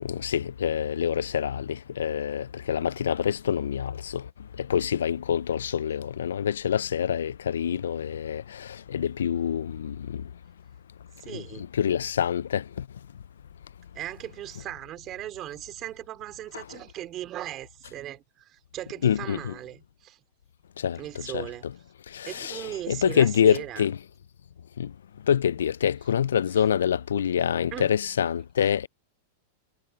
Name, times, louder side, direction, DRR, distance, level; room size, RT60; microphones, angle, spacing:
voice 1, 0.0-4.2 4.7-8.4 8.9-10.2 11.3-11.4 11.8-12.6 19.0-19.5 20.8-21.0 21.3-21.5 22.1-24.0 24.8-24.9 25.3-28.9, left 8 dB, 85° left, 0.4 m, -26 dB
voice 2, 11.2-11.7 13.9-20.2 21.0-21.6 22.3-23.8 27.7-27.9, right 13 dB, 35° right, 3.9 m, -38 dB
hypercardioid pair, 115°, 0 cm